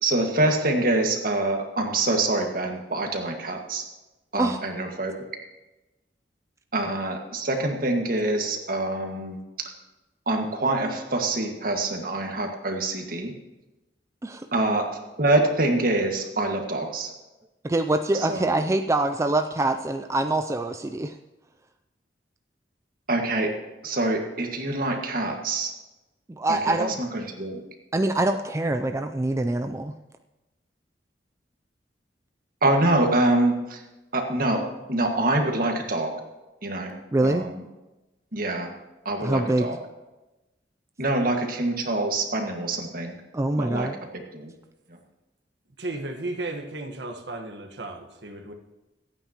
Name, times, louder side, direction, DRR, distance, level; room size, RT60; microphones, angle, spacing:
voice 1, 0.0-3.8 4.3-5.1 6.7-9.4 10.3-13.3 14.5-17.1 18.3-18.6 23.1-23.5 23.8-25.7 26.5-27.6 32.6-33.8 34.1-34.6 34.9-36.1 36.6-36.9 37.2-37.6 38.3-38.7 39.0-39.8 41.0-43.1 43.6-43.9 44.1-44.5, right 2 dB, 55° right, 3 dB, 1.8 m, -25 dB
voice 2, 17.6-21.2 26.3-26.9 27.9-29.9 37.1-37.5 39.2-39.7 43.3-44.0, right 2 dB, 15° right, 6 dB, 0.4 m, -24 dB
voice 3, 45.8-48.5, right 2 dB, 70° right, 4 dB, 1.3 m, -34 dB
25.5 x 9.0 x 3.0 m, 1.1 s
head